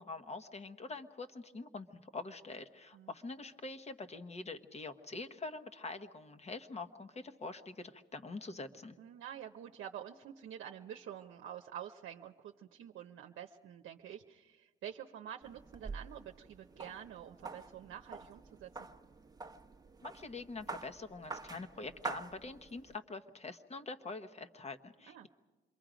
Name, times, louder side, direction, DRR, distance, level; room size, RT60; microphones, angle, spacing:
voice 1, 0.0-9.0 20.0-25.3, left 3 dB, 35° left, 9 dB, 1.2 m, -45 dB
voice 2, 9.0-18.7 25.1-25.3, right 10 dB, 75° right, 4 dB, 0.8 m, -48 dB
sound 1, 15.4-23.0, right 3 dB, 20° right, 1.0 m, -47 dB
27.5 x 22.5 x 5.1 m, 1.3 s
cardioid pair, 90°, 20 cm